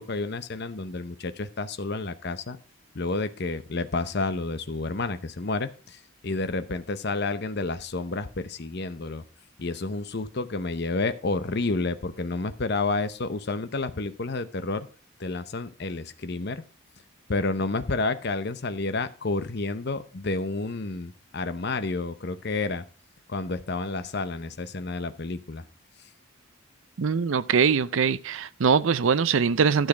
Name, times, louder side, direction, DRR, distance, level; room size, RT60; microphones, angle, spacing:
voice 1, 0.0-2.6 2.9-9.2 9.6-14.9 15.2-16.6 17.3-22.8 23.3-25.6, left 3 dB, 50° left, 0.7 m, -30 dB
voice 2, 27.0-29.9, right 6 dB, 65° right, 0.5 m, -22 dB
12.0 x 6.5 x 4.9 m
head